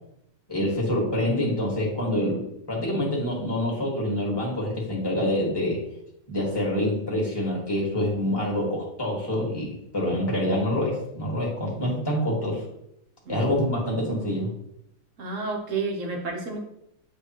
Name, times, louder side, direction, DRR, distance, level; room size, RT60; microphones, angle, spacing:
voice 1, 0.5-5.8 6.3-12.6 13.3-14.5, left 1 dB, 15° left, -3 dB, 1.6 m, -26 dB
voice 2, 15.2-16.6, right 4 dB, 45° right, 1 dB, 1.2 m, -30 dB
9.5 x 3.4 x 3.0 m, 0.77 s
omnidirectional pair, 2.2 m